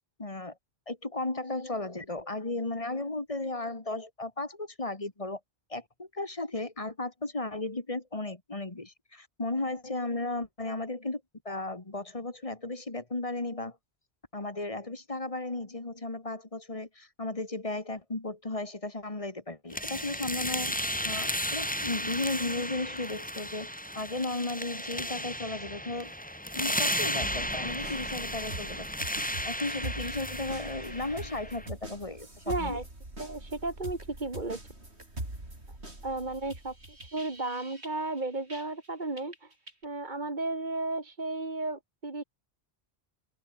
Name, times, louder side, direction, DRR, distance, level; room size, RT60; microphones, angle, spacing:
voice 1, 0.2-0.6 0.9-5.4 5.7-13.8 14.3-26.1 26.5-29.1 29.4-32.8, left 2 dB, 30° left, 1.9 m, -35 dB
sound 1, 19.7-31.7, equal, 5° left, 3.8 m, -34 dB
sound 2, 27.2-38.9 39.2-39.8, right 1 dB, 80° right, 6.6 m, -43 dB
voice 2, 32.5-32.8 33.2-34.6 36.0-36.7 37.1-39.5 39.8-42.2, right 2 dB, 45° right, 2.4 m, -34 dB
open air
omnidirectional pair, 1.1 m